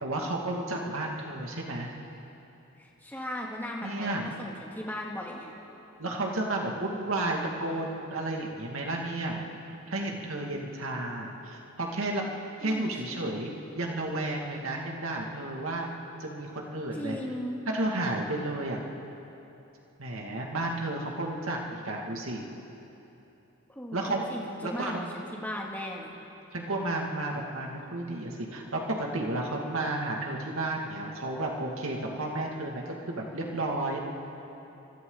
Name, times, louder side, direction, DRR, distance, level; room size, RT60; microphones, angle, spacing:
voice 1, 0.0-1.9 3.8-4.2 6.0-9.4 9.9-12.3 12.6-15.9 16.2-17.2 17.7-18.8 20.0-22.4 23.9-24.3 24.6-25.1 26.5-34.0, right 2 dB, 80° right, 0 dB, 2.3 m, -32 dB
voice 2, 2.8-5.5 12.6-13.2 16.9-17.7 23.8-24.0 24.3-26.1, left 1 dB, 10° left, -3 dB, 2.4 m, -37 dB
28.0 x 25.0 x 4.0 m, 3.0 s
head